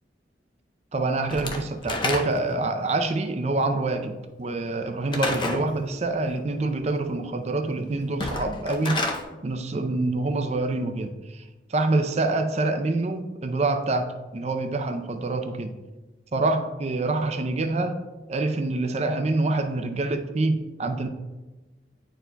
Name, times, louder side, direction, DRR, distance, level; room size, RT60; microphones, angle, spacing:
voice 1, 0.9-9.0 9.4-11.4 11.7-15.8 16.3-18.0 18.3-21.1, right 2 dB, 35° right, 7 dB, 0.5 m, -26 dB
Slam / Wood, 1.3-2.6 5.1-5.7 8.1-9.2, left 2 dB, 25° left, 0.5 m, -29 dB
9.9 x 4.5 x 2.2 m, 1.2 s
head